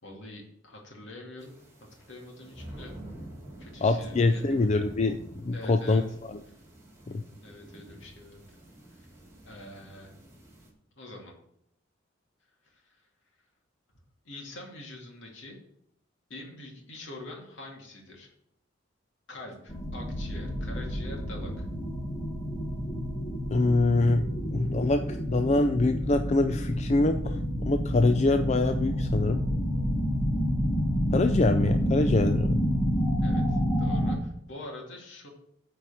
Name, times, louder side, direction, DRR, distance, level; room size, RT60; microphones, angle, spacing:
voice 1, 0.0-1.6 2.1-2.9 3.6-4.7 5.5-6.0 7.4-8.4 9.4-10.1 11.0-11.3 12.6-13.0 14.2-15.6 16.3-18.3 19.3-21.7 33.2-35.3, left 2 dB, 65° left, 0 dB, 2.4 m, -45 dB
sound 1, 1.4-10.7, right 1 dB, 15° right, 2.2 m, -47 dB
voice 2, 3.8-6.0 6.3-6.4 7.1-7.2 23.5-24.2 24.5-29.4 31.1-32.6, left 2 dB, 35° left, 7 dB, 0.4 m, -25 dB
sound 2, 19.7-34.2, equal, 15° left, 1.2 m, -29 dB
9.1 x 4.6 x 7.1 m, 0.73 s
head